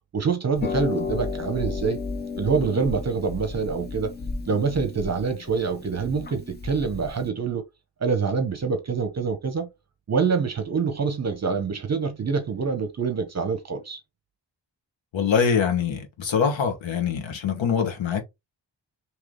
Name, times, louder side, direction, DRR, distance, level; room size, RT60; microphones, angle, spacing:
voice 1, 0.1-2.0 2.3-4.1 4.5-7.6 8.0-9.7 10.1-14.0, right 5 dB, 35° right, 0.7 m, -26 dB
Harp, 0.5-7.3, left 4 dB, 25° left, 0.4 m, -33 dB
voice 2, 15.1-18.2, left 6 dB, 80° left, 1.2 m, -24 dB
3.1 x 2.9 x 3.7 m
wide cardioid pair, 145°, 45 cm